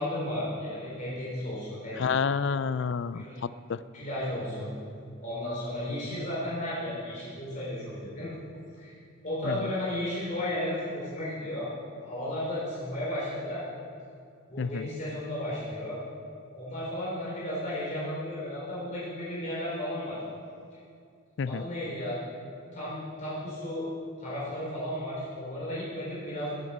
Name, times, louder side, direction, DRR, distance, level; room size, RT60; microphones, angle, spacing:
voice 1, 0.0-2.0 3.1-3.4 3.9-4.7 5.2-8.3 8.8-8.9 9.2-11.7 12.0-13.6 14.5-16.0 16.5-20.2 21.5-22.2 22.7-23.9 24.2-26.5, left 1 dB, 35° left, -7 dB, 3.5 m, -34 dB
voice 2, 2.0-3.2 3.7-3.8 9.5-9.6 14.6-14.9 21.4-21.6, left 6 dB, 60° left, 15 dB, 0.4 m, -29 dB
21.0 x 7.9 x 5.4 m, 2.3 s
head